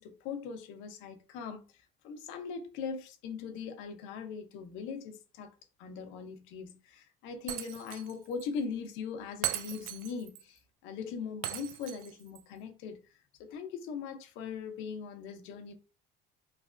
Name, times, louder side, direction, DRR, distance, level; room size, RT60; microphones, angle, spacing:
voice 1, 0.0-13.0 13.4-15.7, left 5 dB, 75° left, 0.8 m, -40 dB
Shatter, 7.5-8.1 8.4-8.5 9.4-10.4 11.4-12.4, right 12 dB, 75° right, 0.4 m, -38 dB
3.3 x 3.1 x 2.5 m
cardioid pair, 160°, 20 cm